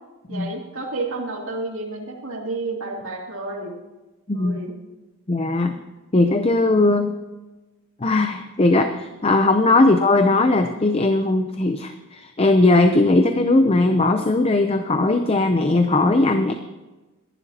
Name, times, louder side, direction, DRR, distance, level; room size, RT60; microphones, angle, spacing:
voice 1, 0.3-3.7 4.3-4.7, right 2 dB, 60° right, -2 dB, 2.8 m, -31 dB
voice 2, 4.3-4.6 5.3-5.8 6.1-7.2 8.0-16.5, left 2 dB, 25° left, 7 dB, 0.6 m, -18 dB
22.0 x 11.0 x 2.9 m, 1.1 s
head